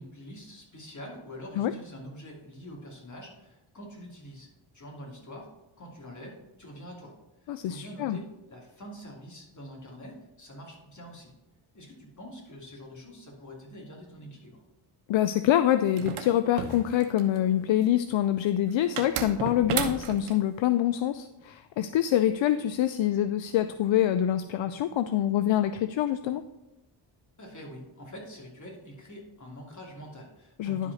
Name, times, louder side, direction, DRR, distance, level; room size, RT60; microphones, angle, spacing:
voice 1, 0.0-4.5 4.7-5.5 5.8-7.1 7.4-11.3 11.7-14.6 27.4-30.9, equal, 35° left, -1 dB, 2.7 m, -45 dB
voice 2, 7.5-8.2 15.1-26.4 30.6-30.9, left 11 dB, 70° left, 11 dB, 0.5 m, -25 dB
sound 1, 16.0-17.4 19.0-20.4, right 8 dB, 85° right, 0.9 m, -33 dB
11.0 x 4.9 x 4.1 m, 0.98 s
cardioid pair, 70°, 49 cm